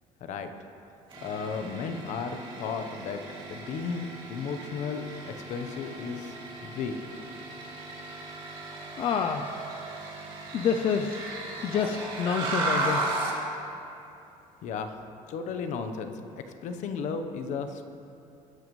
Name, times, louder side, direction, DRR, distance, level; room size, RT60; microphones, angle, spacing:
sound 1, 1.1-13.4, right 2 dB, 35° right, 2.8 m, -36 dB
voice 1, 1.2-3.2 3.5-6.4 6.6-6.9 14.6-14.9 15.3-16.1 16.6-17.9, left 5 dB, 60° left, 8 dB, 1.0 m, -34 dB
voice 2, 9.0-9.5 10.5-11.2 11.6-13.1, left 7 dB, 40° left, 5 dB, 0.5 m, -27 dB
21.0 x 10.5 x 3.2 m, 2.7 s
cardioid pair, 145°, 14 cm